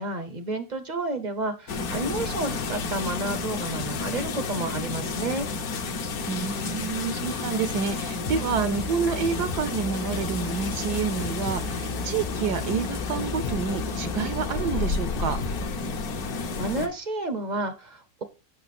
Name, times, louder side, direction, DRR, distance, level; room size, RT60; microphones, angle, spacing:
voice 1, 0.0-5.5 16.6-18.2, right 2 dB, 45° right, 10 dB, 0.5 m, -31 dB
sound 1, 1.7-16.9, left 4 dB, 60° left, 1.3 m, -31 dB
voice 2, 6.3-15.4, right 6 dB, 70° right, 12 dB, 1.1 m, -29 dB
sound 2, 8.3-15.7, left 3 dB, 45° left, 0.7 m, -35 dB
8.0 x 5.9 x 4.2 m, 0.31 s
omnidirectional pair, 1.9 m